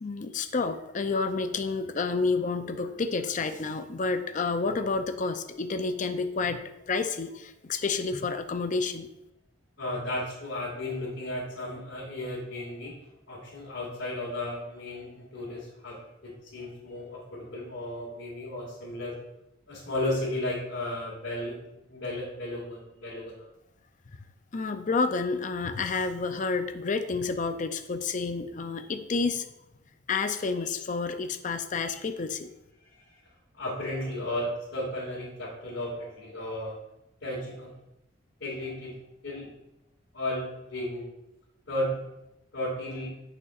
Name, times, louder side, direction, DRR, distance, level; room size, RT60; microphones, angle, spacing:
voice 1, 0.0-9.1 24.5-29.5 30.1-32.5, left 4 dB, 40° left, 8 dB, 0.5 m, -29 dB
voice 2, 9.8-13.0 13.3-16.0 16.5-19.1 19.7-23.5 33.6-36.7 37.2-37.7 38.4-39.0 39.2-39.5 40.1-41.0 41.7-42.0 42.5-43.1, left 1 dB, 80° left, -8 dB, 2.2 m, -34 dB
8.6 x 6.5 x 2.5 m, 0.88 s
head